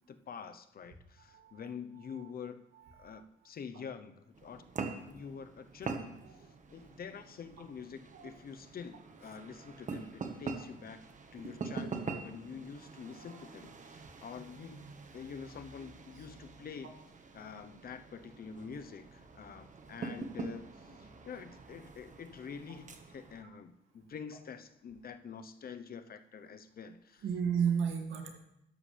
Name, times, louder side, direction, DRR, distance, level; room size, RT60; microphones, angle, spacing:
voice 1, 0.1-2.6 3.0-4.6 5.1-6.2 6.7-11.0 11.3-17.0 17.3-27.2, left 6 dB, 50° left, 10 dB, 0.8 m, -47 dB
voice 2, 1.3-1.7 2.1-2.3 2.7-3.2 6.2-6.5 8.1-8.3 13.0-13.5 16.2-16.3 21.0-21.1 23.4-23.5 27.2-28.3, right 7 dB, 75° right, 3 dB, 2.1 m, -35 dB
sound 1, 4.3-23.4, right 4 dB, 40° right, 1.4 m, -45 dB
13.0 x 11.0 x 3.4 m, 0.84 s
cardioid pair, 90°, 20 cm